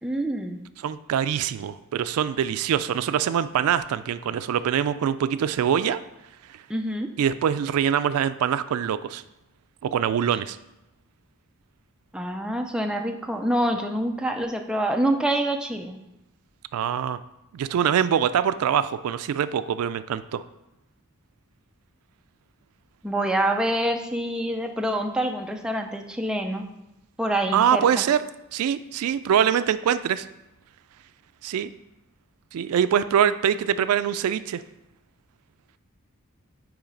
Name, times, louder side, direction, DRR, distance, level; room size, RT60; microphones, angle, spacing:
voice 1, 0.0-0.6 6.7-7.1 12.1-16.0 23.0-26.6 27.2-28.0, right 1 dB, 5° right, 3 dB, 0.4 m, -26 dB
voice 2, 0.8-6.0 6.5-6.6 7.2-9.2 9.8-10.6 16.7-17.2 17.5-20.4 27.5-28.2 28.5-30.3 31.4-31.7 32.5-34.6, right 8 dB, 80° right, 14 dB, 0.3 m, -24 dB
8.7 x 3.2 x 5.1 m, 0.92 s
head